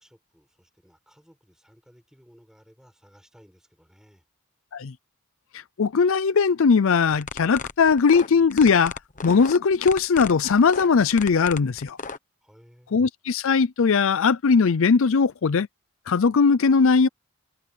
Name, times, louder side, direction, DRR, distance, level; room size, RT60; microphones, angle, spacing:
voice 1, 0.0-4.3 12.4-13.0, equal, ahead, 6.7 m, -56 dB
voice 2, 5.5-12.0 12.9-15.7 16.1-17.1, left 5 dB, 65° left, 0.5 m, -19 dB
sound 1, 7.2-12.2, left 5 dB, 35° left, 1.1 m, -35 dB
head